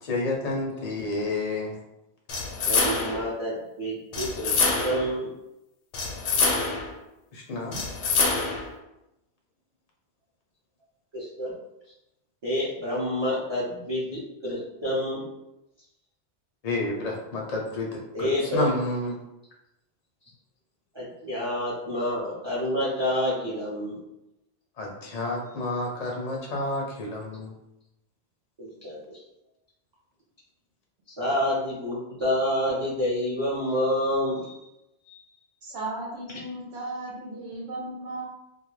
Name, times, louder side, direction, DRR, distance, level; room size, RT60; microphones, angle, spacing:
voice 1, 0.0-1.7 7.3-7.8 16.6-17.9 18.2-19.1 24.8-27.5, left 2 dB, 50° left, -1 dB, 0.5 m, -30 dB
sound 1, 2.3-3.3 4.1-5.1 5.9-6.9 7.7-8.7, left 4 dB, 90° left, 0.9 m, -25 dB
voice 2, 2.7-5.3 11.1-11.5 12.4-15.2 18.1-18.7 20.9-24.0 28.6-29.2 31.2-34.7 35.1-35.2, equal, 30° right, -8 dB, 0.5 m, -28 dB
voice 3, 35.6-38.2, right 2 dB, 85° right, -5 dB, 0.9 m, -35 dB
2.3 x 2.2 x 3.1 m, 0.90 s
omnidirectional pair, 1.2 m